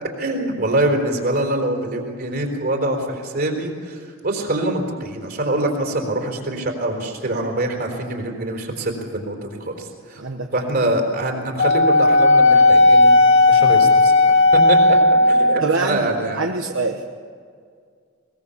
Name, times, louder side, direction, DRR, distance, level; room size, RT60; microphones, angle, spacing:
voice 1, 0.2-10.2 10.5-14.8 15.3-16.4, right 1 dB, 50° right, 2 dB, 4.1 m, -24 dB
voice 2, 10.2-10.5 15.6-16.1 16.4-17.0, right 3 dB, 70° right, 3 dB, 1.1 m, -24 dB
Wind instrument woodwind instrument, 11.6-15.7, left 2 dB, 60° left, 0.8 m, -14 dB
22.0 x 20.5 x 7.2 m, 2.1 s
head